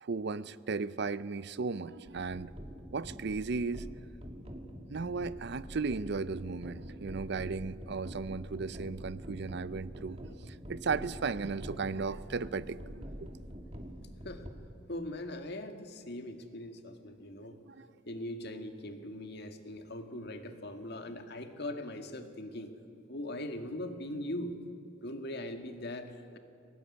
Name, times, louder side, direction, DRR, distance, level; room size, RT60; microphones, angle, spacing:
voice 1, 0.0-2.5 2.9-3.9 4.9-13.3 17.7-17.9, right 4 dB, 60° right, 17 dB, 0.6 m, -36 dB
sound 1, 2.1-14.5, equal, 30° right, 2.2 m, -45 dB
voice 2, 14.9-17.6 18.1-22.7 23.1-24.5 25.0-26.4, left 1 dB, 55° left, 6 dB, 1.9 m, -40 dB
22.0 x 17.5 x 9.7 m, 2.5 s
head